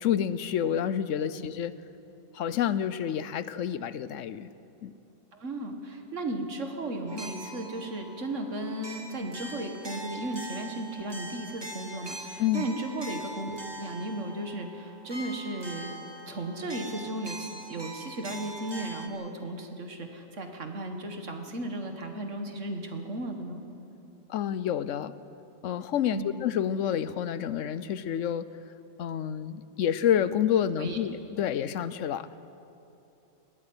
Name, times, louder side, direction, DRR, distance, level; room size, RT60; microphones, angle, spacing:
voice 1, 0.0-1.7 2.3-4.5 4.8-4.9 12.4-12.7 24.3-25.1 25.6-28.5 29.0-32.3, left 9 dB, 75° left, 15 dB, 1.0 m, -28 dB
voice 2, 5.3-23.6 26.1-26.4 30.8-31.0, right 1 dB, 70° right, 4 dB, 2.1 m, -35 dB
sound 1, 7.1-19.1, right 1 dB, 20° right, 1.2 m, -42 dB
21.0 x 14.0 x 8.8 m, 2.8 s
omnidirectional pair, 1.3 m